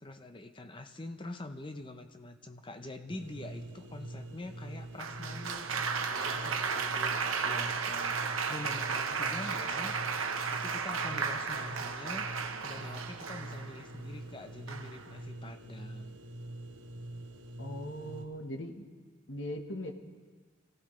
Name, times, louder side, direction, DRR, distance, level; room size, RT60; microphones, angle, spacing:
voice 1, 0.0-8.2 8.5-12.3 12.6-16.2, left 2 dB, 25° left, 8 dB, 0.7 m, -45 dB
sound 1, 3.1-18.3, right 1 dB, 60° right, 1.1 m, -45 dB
Applause, 5.0-13.8 14.7-15.1, right 5 dB, 90° right, 1.0 m, -34 dB
voice 2, 17.6-18.9 19.3-19.9, equal, 60° left, 4 dB, 1.3 m, -39 dB
25.5 x 16.0 x 3.2 m, 1.5 s
head